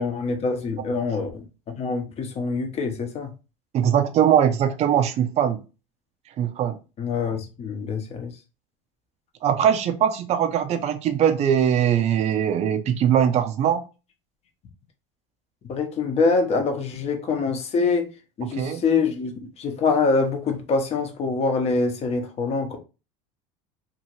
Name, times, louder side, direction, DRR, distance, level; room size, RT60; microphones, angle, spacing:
voice 1, 0.0-1.4 1.8-3.3 7.0-8.3 15.7-18.1 18.4-22.8, left 4 dB, 40° left, 0.9 m, -25 dB
voice 2, 3.7-5.6 6.4-6.8 9.4-13.8 18.6-18.8, right 9 dB, 40° right, 0.5 m, -21 dB
2.8 x 2.6 x 2.9 m
supercardioid pair, 100°, 17 cm